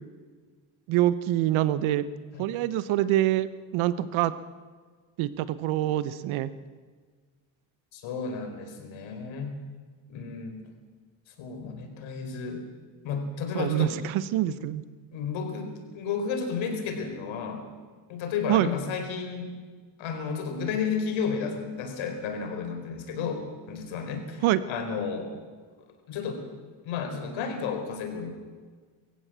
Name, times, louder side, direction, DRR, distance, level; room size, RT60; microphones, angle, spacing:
voice 1, 0.9-2.0 2.4-4.3 5.2-6.5 13.5-14.8 18.5-18.7 24.4-24.6, right 14 dB, 80° right, 15 dB, 1.2 m, -25 dB
voice 2, 7.9-9.5 10.1-10.6 11.4-12.6 13.0-14.0 14.4-14.6 15.1-17.6 18.1-19.5 20.0-25.3 26.1-26.4 26.8-28.3, left 5 dB, 75° left, 5 dB, 4.5 m, -32 dB
23.0 x 15.5 x 7.6 m, 1.5 s
cardioid pair, 100°, 47 cm